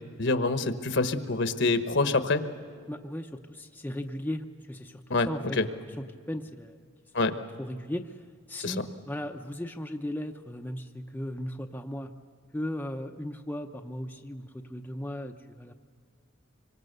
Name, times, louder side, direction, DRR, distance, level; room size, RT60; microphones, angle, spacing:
voice 1, 0.2-2.4 5.1-5.6 7.1-7.4 8.6-8.9, left 3 dB, 60° left, 10 dB, 1.2 m, -26 dB
voice 2, 2.9-6.8 7.6-8.1 8.5-8.8 9.1-12.1 12.5-15.7, left 1 dB, 10° left, 4 dB, 0.7 m, -37 dB
25.5 x 24.5 x 6.7 m, 2.1 s
head